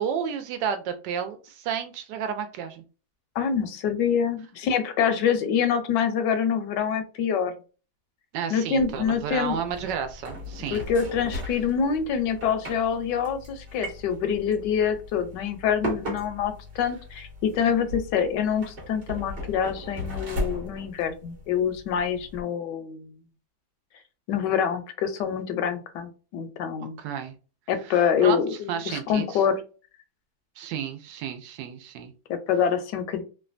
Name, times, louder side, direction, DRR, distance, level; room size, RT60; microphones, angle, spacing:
voice 1, 0.0-2.8 8.3-10.8 27.0-27.3 27.9-29.4 30.6-32.1, right 8 dB, 80° right, 8 dB, 1.3 m, -31 dB
voice 2, 3.4-7.5 8.5-9.6 10.7-23.1 24.3-27.0 27.7-29.6 32.3-33.2, left 7 dB, 80° left, 8 dB, 1.2 m, -26 dB
sound 1, 8.8-22.4, left 1 dB, 40° right, 1.0 m, -37 dB
3.2 x 2.2 x 2.4 m, 0.35 s
omnidirectional pair, 1.9 m